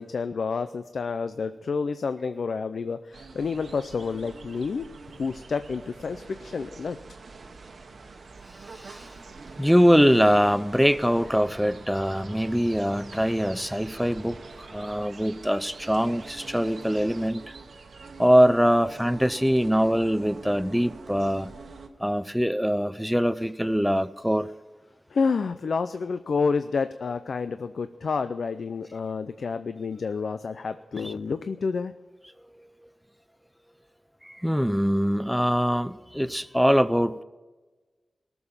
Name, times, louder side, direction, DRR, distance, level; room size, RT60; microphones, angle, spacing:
voice 1, 0.0-4.8 5.2-7.0 25.1-31.9, left 5 dB, 70° left, 11 dB, 0.5 m, -29 dB
sound 1, 3.1-21.9, right 4 dB, 75° right, 1.1 m, -46 dB
sound 2, 5.0-17.3, right 3 dB, 50° right, 1.2 m, -49 dB
voice 2, 8.7-9.1 9.6-17.5 18.2-21.5 22.0-24.5 31.0-31.1 34.2-37.2, equal, ahead, 14 dB, 0.5 m, -23 dB
18.0 x 7.0 x 7.2 m, 1.3 s
wide cardioid pair, 115°, 0 cm